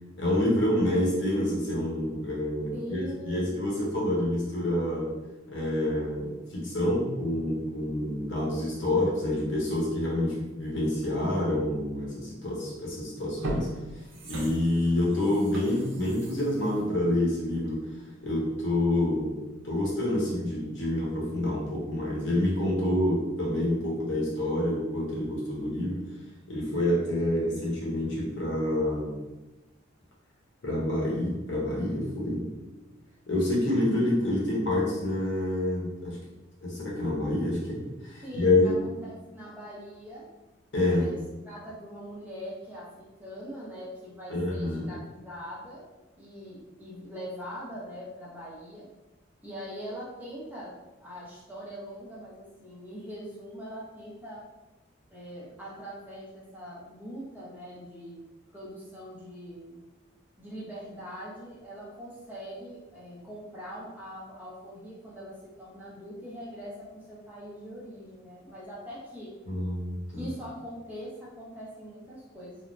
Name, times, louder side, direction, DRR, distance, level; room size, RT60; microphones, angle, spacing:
voice 1, 0.2-5.1 5.5-13.7 14.3-17.8 18.2-26.0 26.5-29.2 30.6-32.5 33.3-36.2 36.6-38.7 40.7-41.1 44.3-44.9 69.5-70.3, left 1 dB, 60° left, -4 dB, 0.8 m, -27 dB
voice 2, 2.7-3.6 38.2-40.3 40.9-41.2 41.4-45.9 46.2-48.9 49.4-50.7 51.0-54.4 55.1-58.2 58.5-59.8 60.4-69.3 70.2-72.6, equal, 10° right, -7 dB, 0.5 m, -42 dB
sound 1, 12.6-12.8 13.2-17.9 18.3-18.4, right 1 dB, 65° right, 0.6 m, -39 dB
3.2 x 2.0 x 2.5 m, 1.1 s
head